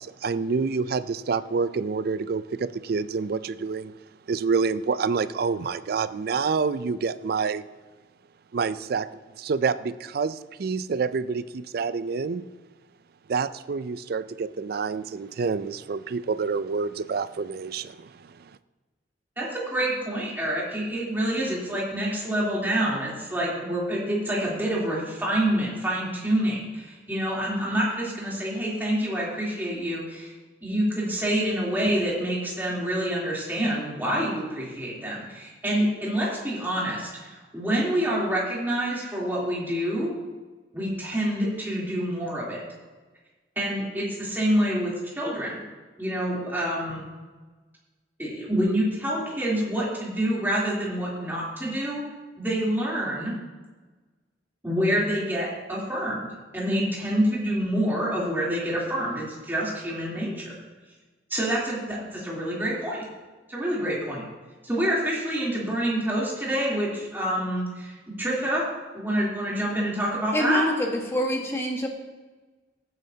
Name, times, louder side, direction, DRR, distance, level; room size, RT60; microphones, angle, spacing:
voice 1, 0.0-3.9 4.3-7.6 8.5-9.1 9.4-12.5 13.3-18.4, right 5 dB, 60° right, 15 dB, 0.4 m, -27 dB
voice 2, 19.4-30.3 30.6-40.1 40.7-42.6 43.5-45.6 46.0-47.1 48.2-52.1 52.4-53.4 54.6-56.3 56.5-60.5 61.3-63.1 63.5-64.2 64.6-68.7 68.9-70.6, right 1 dB, 10° right, -6 dB, 3.2 m, -27 dB
voice 3, 70.3-71.9, left 1 dB, 15° left, 1 dB, 1.4 m, -25 dB
16.0 x 9.1 x 2.8 m, 1.3 s
head